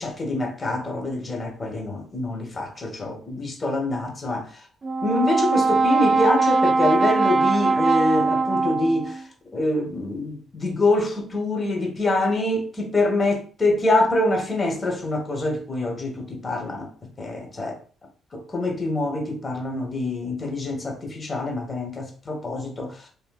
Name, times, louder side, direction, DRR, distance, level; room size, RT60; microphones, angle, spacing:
voice 1, 0.0-4.6 5.0-9.2 9.5-16.9 17.2-17.8 18.3-23.1, left 2 dB, 30° left, 1.1 m, -25 dB
Brass instrument, 4.8-9.2, right 4 dB, 40° right, 0.4 m, -21 dB
3.5 x 2.6 x 2.3 m
cardioid pair, 90°, 0 cm